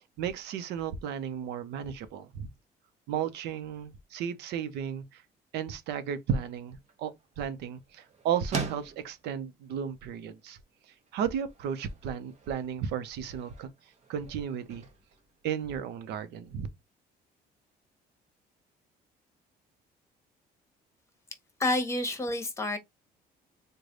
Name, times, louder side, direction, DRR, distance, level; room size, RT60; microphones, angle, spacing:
voice 1, 0.2-2.5 3.1-5.2 5.5-10.6 10.9-13.7 14.1-14.8 15.4-16.7, right 8 dB, 80° right, 0.6 m, -34 dB
sound 1, 6.5-16.2, right 5 dB, 40° right, 0.9 m, -44 dB
voice 2, 21.6-22.8, left 2 dB, 15° left, 1.0 m, -29 dB
3.2 x 2.2 x 3.8 m
cardioid pair, 110°, 17 cm